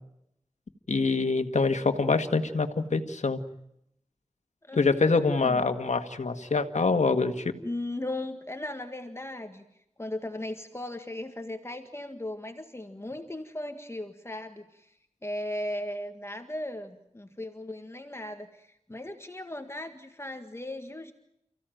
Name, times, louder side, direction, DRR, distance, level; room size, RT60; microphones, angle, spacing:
voice 1, 0.9-3.4 4.8-7.5, left 4 dB, 85° left, 8 dB, 1.8 m, -25 dB
voice 2, 4.6-5.6 7.6-9.6 10.0-14.9 15.2-21.1, left 1 dB, 20° left, 6 dB, 1.8 m, -37 dB
30.0 x 16.0 x 9.1 m, 0.79 s
wide cardioid pair, 80°, 12 cm